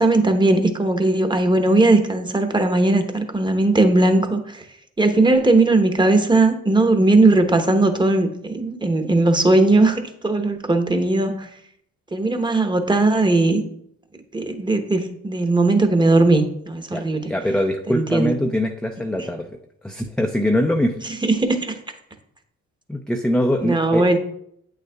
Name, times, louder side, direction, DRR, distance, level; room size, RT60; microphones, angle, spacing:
voice 1, 0.0-4.6 5.0-11.5 12.1-13.6 14.3-17.3 17.9-18.3 21.2-21.7 23.6-24.2, right 2 dB, 15° right, 6 dB, 0.9 m, -18 dB
voice 2, 16.9-19.5 19.8-21.0 22.9-24.2, left 1 dB, 5° left, 3 dB, 0.4 m, -22 dB
8.2 x 6.5 x 2.3 m, 0.72 s
cardioid pair, 90°, 30 cm